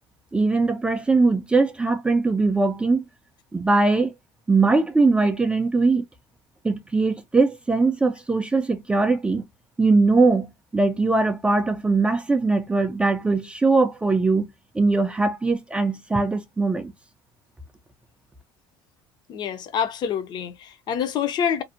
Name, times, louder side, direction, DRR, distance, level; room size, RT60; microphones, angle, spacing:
voice 1, 0.3-3.0 3.5-4.1 4.5-6.0 6.6-9.4 9.8-14.5 14.7-16.9, right 3 dB, 10° right, 0.3 m, -21 dB
voice 2, 19.3-21.6, left 8 dB, 45° left, 0.5 m, -26 dB
2.5 x 2.0 x 2.5 m
cardioid pair, 135°, 10 cm